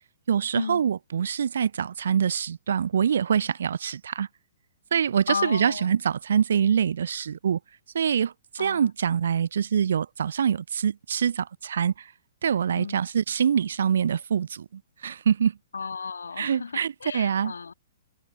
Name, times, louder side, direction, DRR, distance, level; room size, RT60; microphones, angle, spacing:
voice 1, 0.3-4.3 4.9-7.6 7.9-12.1 12.4-15.6 16.4-17.5, right 8 dB, 60° right, 0.5 m, -25 dB
voice 2, 5.3-5.9 8.6-8.9 12.7-13.0 15.7-17.7, left 5 dB, 70° left, 0.6 m, -34 dB
figure-of-eight pair, 115°, 0 cm